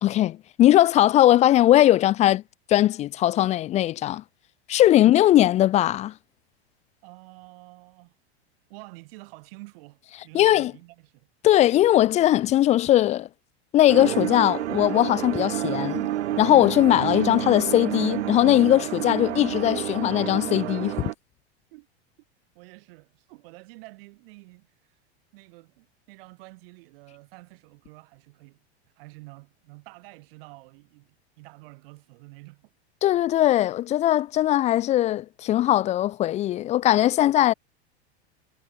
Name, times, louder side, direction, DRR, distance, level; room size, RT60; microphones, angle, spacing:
voice 1, 0.0-2.4 2.7-4.2 4.7-6.1 10.3-10.7 11.4-13.3 13.7-16.1 16.4-21.0 33.0-37.5, left 13 dB, 20° left, 0.4 m, -20 dB
voice 2, 7.0-8.1 8.7-11.3 21.7-21.9 22.5-25.0 25.3-28.6 29.0-32.7, right 24 dB, 60° right, 6.0 m, -48 dB
sound 1, 13.9-21.1, right 13 dB, 90° right, 1.5 m, -29 dB
supercardioid pair, 140°, 33 cm